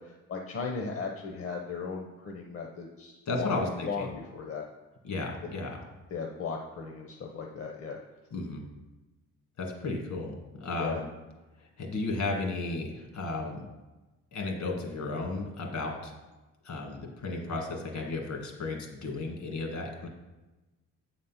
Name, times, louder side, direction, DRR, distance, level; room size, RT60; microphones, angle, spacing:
voice 1, 0.0-4.7 6.1-8.0 10.8-11.0, left 5 dB, 50° left, 2 dB, 0.9 m, -37 dB
voice 2, 3.3-4.1 5.0-5.8 8.3-8.6 9.6-11.0 11.8-13.7 14.3-16.1 16.6-20.1, left 2 dB, 65° left, 1 dB, 2.0 m, -34 dB
7.5 x 4.2 x 5.7 m, 1.1 s
cardioid pair, 90°, 30 cm